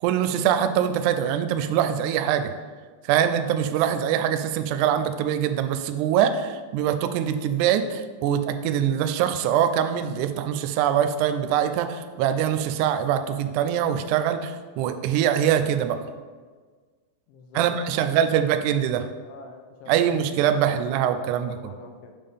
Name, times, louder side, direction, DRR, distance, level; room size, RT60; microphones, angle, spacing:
voice 1, 0.0-2.5 3.0-16.0 17.5-19.1 19.9-21.6, right 9 dB, 90° right, 9 dB, 1.7 m, -23 dB
voice 2, 17.3-18.5 19.3-22.1, left 3 dB, 80° left, 4 dB, 2.3 m, -44 dB
8.3 x 3.7 x 5.2 m, 1.5 s
omnidirectional pair, 4.0 m